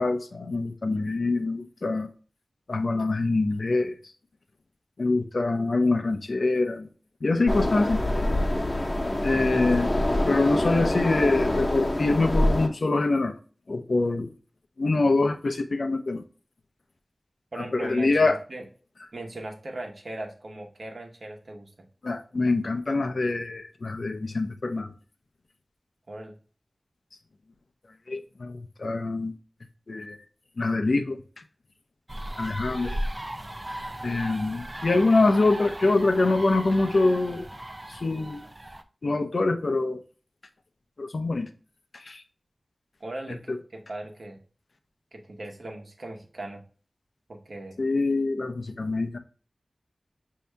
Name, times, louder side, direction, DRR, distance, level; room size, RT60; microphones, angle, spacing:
voice 1, 0.0-2.1 2.7-3.9 5.0-6.9 7.2-8.0 9.2-9.9 10.3-13.3 13.7-14.3 14.8-16.2 17.7-18.4 22.0-24.9 28.1-29.3 29.9-30.2 30.6-31.2 32.4-33.0 34.0-37.5 37.9-38.4 39.0-40.0 41.0-41.5 41.9-42.2 43.5-43.6 47.8-49.2, left 3 dB, 70° left, 0.6 m, -24 dB
sound 1, 7.5-12.7, left 1 dB, 35° left, 0.7 m, -25 dB
voice 2, 9.3-9.6 17.5-18.7 19.1-21.9 26.1-26.4 43.0-44.4 45.1-46.6 47.3-47.8, right 1 dB, 70° right, 1.0 m, -39 dB
sound 2, 32.1-38.8, right 1 dB, 30° right, 0.4 m, -36 dB
5.4 x 2.8 x 3.3 m
wide cardioid pair, 50°, 0 cm